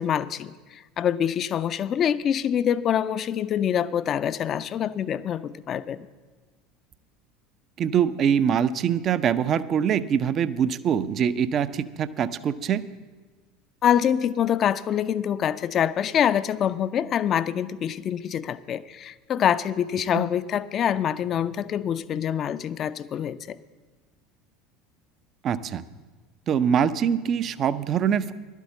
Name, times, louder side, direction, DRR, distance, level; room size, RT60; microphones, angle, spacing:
voice 1, 0.0-6.1 13.8-23.6, left 9 dB, 35° left, 15 dB, 0.4 m, -25 dB
voice 2, 7.8-12.8 20.1-20.2 25.4-25.8 26.5-28.3, right 8 dB, 40° right, 15 dB, 0.5 m, -24 dB
12.0 x 8.3 x 7.5 m, 1.3 s
figure-of-eight pair, 70°, 0 cm